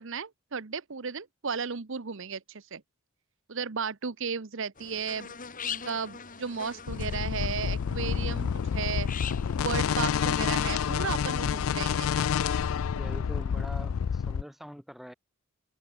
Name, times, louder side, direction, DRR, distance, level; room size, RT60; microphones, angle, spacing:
voice 1, 0.0-2.8 3.5-5.3 5.6-9.1 9.6-12.1, right 5 dB, 60° right, 0.9 m, -34 dB
sound 1, 4.8-10.2, left 7 dB, 40° left, 3.2 m, -42 dB
sound 2, 6.9-14.4, left 7 dB, 70° left, 0.4 m, -28 dB
voice 2, 12.9-15.1, equal, ahead, 5.3 m, -44 dB
open air
head